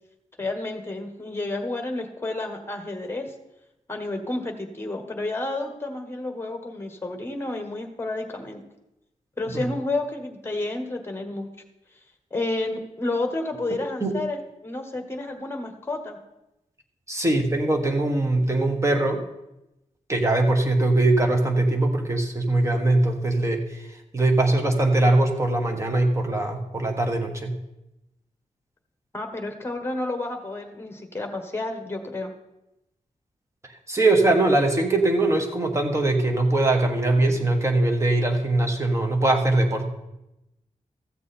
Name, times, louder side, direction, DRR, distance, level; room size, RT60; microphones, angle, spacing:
voice 1, 0.4-3.3 3.9-8.6 9.4-11.5 12.3-16.2 29.1-32.3, left 2 dB, 20° left, 5 dB, 1.3 m, -30 dB
voice 2, 13.7-14.2 17.1-19.2 20.1-27.5 33.9-39.9, right 2 dB, 20° right, 3 dB, 1.3 m, -22 dB
14.0 x 7.4 x 4.3 m, 0.92 s
wide cardioid pair, 150°, 13 cm